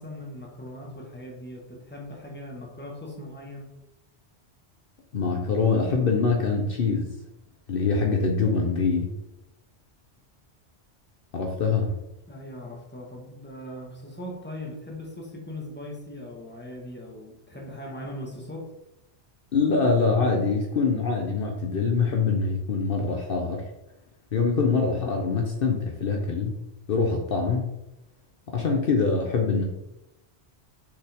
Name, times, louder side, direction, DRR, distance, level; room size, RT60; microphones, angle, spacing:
voice 1, 0.0-3.7 12.3-18.7, left 1 dB, 10° left, -1 dB, 1.4 m, -39 dB
voice 2, 5.1-7.1 7.7-9.1 11.3-11.9 19.5-23.6 24.3-26.6 26.9-27.7 28.5-29.6, left 4 dB, 60° left, 1 dB, 1.0 m, -24 dB
6.7 x 5.3 x 3.5 m, 0.90 s
omnidirectional pair, 1.1 m